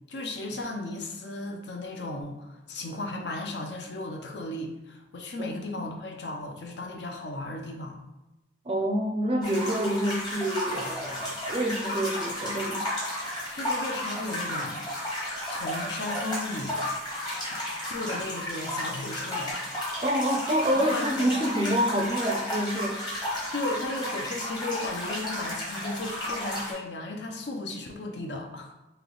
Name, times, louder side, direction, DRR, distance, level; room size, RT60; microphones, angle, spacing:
voice 1, 0.1-8.0 13.5-14.8 15.5-16.8 17.5-17.6 17.9-19.7 20.8-21.3 22.9-23.1 23.5-28.7, left 2 dB, 75° left, 2 dB, 0.6 m, -35 dB
voice 2, 5.4-5.8 8.7-12.8 20.0-23.0, equal, 30° right, 2 dB, 0.4 m, -27 dB
sound 1, 9.4-26.7, left 1 dB, 25° left, 1.0 m, -33 dB
3.3 x 2.9 x 3.8 m, 0.98 s
head